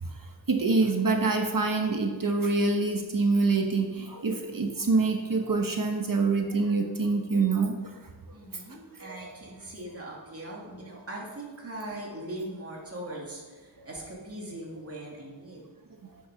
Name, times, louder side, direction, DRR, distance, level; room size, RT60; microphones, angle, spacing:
voice 1, 0.0-8.1 8.5-8.6 9.0-9.3 13.1-13.2, right 3 dB, 45° right, 3 dB, 1.0 m, -26 dB
voice 2, 8.3-15.6, right 1 dB, 30° right, -3 dB, 2.5 m, -40 dB
8.7 x 6.7 x 5.8 m, 1.3 s
wide cardioid pair, 90°, 44 cm